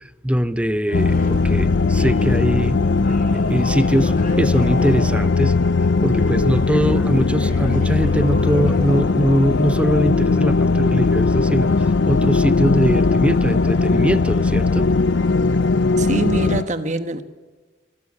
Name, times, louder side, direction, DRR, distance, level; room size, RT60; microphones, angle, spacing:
voice 1, 0.2-2.8 3.3-5.6 6.0-14.9, equal, 5° right, 13 dB, 0.7 m, -21 dB
sound 1, 0.9-16.6, left 3 dB, 80° left, 0.6 m, -19 dB
sound 2, 0.9-16.6, left 1 dB, 50° left, 4.6 m, -38 dB
voice 2, 16.0-17.2, right 2 dB, 40° right, 10 dB, 1.4 m, -23 dB
24.5 x 14.0 x 9.8 m, 1.3 s
head